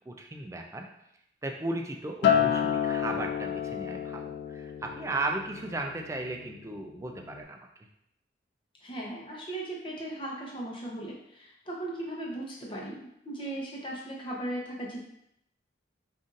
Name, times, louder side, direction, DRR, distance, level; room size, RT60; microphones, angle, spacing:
voice 1, 0.1-0.9 1.4-7.7, right 2 dB, 15° right, 3 dB, 0.3 m, -35 dB
Acoustic guitar, 2.2-6.7 7.0-7.4, left 8 dB, 75° left, 0.3 m, -30 dB
voice 2, 8.8-15.0, right 1 dB, 30° left, -3 dB, 0.8 m, -37 dB
5.3 x 2.6 x 2.5 m, 0.77 s
head